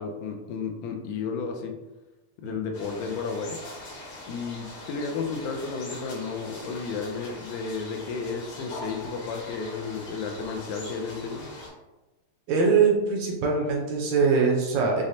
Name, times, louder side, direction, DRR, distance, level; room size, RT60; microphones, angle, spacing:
voice 1, 0.0-1.8 2.4-3.6 4.3-11.5, left 5 dB, 80° left, 3 dB, 1.9 m, -33 dB
sound 1, 2.7-11.7, left 2 dB, 65° left, 1.4 m, -42 dB
voice 2, 12.5-15.0, right 5 dB, 75° right, -1 dB, 1.7 m, -22 dB
6.1 x 2.0 x 2.6 m, 1.1 s
omnidirectional pair, 3.5 m